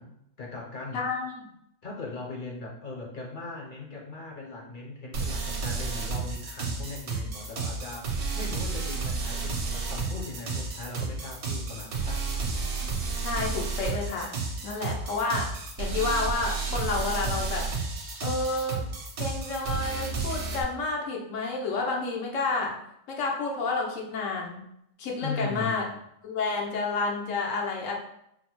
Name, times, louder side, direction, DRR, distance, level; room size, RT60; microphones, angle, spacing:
voice 1, 0.0-1.0 1.8-12.2 25.2-26.0, left 3 dB, 50° left, -2 dB, 0.7 m, -39 dB
voice 2, 0.9-1.5 13.2-15.5 15.8-17.7 18.2-18.8 19.2-22.8 23.1-24.6 25.0-25.8 26.2-27.9, left 3 dB, 80° left, 0 dB, 1.1 m, -30 dB
sound 1, 5.1-20.6, right 4 dB, 65° right, 0.9 m, -32 dB
4.0 x 2.0 x 2.9 m, 0.76 s
omnidirectional pair, 1.3 m